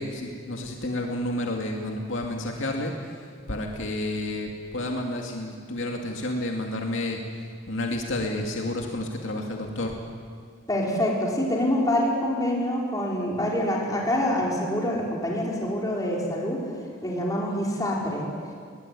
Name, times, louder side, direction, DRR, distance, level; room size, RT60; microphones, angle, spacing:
voice 1, 0.0-3.2 3.5-7.2 7.7-10.0, left 1 dB, 70° left, 1 dB, 2.4 m, -30 dB
voice 2, 10.7-16.6 17.0-18.3, left 1 dB, 15° left, -3 dB, 5.0 m, -26 dB
21.5 x 20.0 x 9.8 m, 2.1 s
head